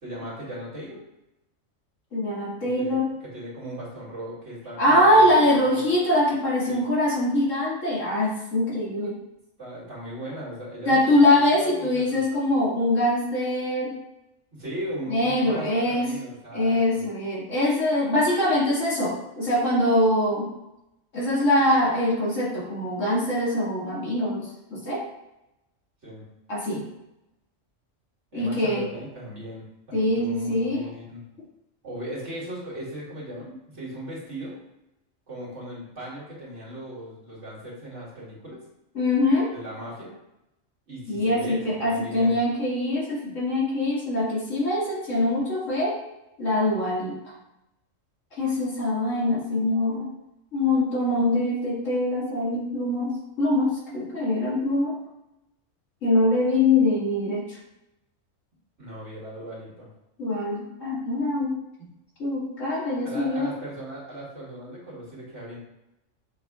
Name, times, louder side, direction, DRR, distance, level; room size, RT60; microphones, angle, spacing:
voice 1, 0.0-1.0 2.8-5.3 5.6-6.0 6.7-6.8 9.6-12.2 14.6-17.0 26.0-26.3 28.3-31.2 31.8-34.5 35.3-38.6 39.5-40.1 40.9-42.4 58.8-59.9 63.0-65.6, right 1 dB, 65° right, -7 dB, 2.7 m, -38 dB
voice 2, 2.1-3.1 4.8-9.1 10.9-13.9 15.1-16.1 16.5-20.5 21.1-25.0 26.5-26.8 28.3-28.8 29.9-30.8 38.9-39.5 41.1-45.9 46.4-47.2 48.4-50.0 50.5-54.9 56.0-57.6 60.2-61.5 62.2-63.5, left 1 dB, 85° left, -6 dB, 2.5 m, -23 dB
7.3 x 5.8 x 2.4 m, 0.90 s
omnidirectional pair, 1.3 m